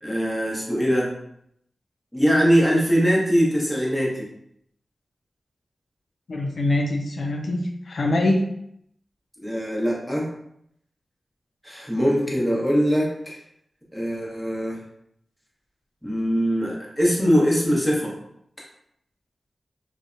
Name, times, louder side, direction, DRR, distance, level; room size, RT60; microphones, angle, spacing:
voice 1, 0.0-1.1 2.1-4.3 9.4-10.3 11.6-13.4 13.9-14.8 16.0-18.1, equal, ahead, -4 dB, 0.9 m, -22 dB
voice 2, 6.3-8.4, left 1 dB, 75° left, 2 dB, 0.3 m, -23 dB
2.6 x 2.1 x 2.5 m, 0.75 s
cardioid pair, 50°, 0 cm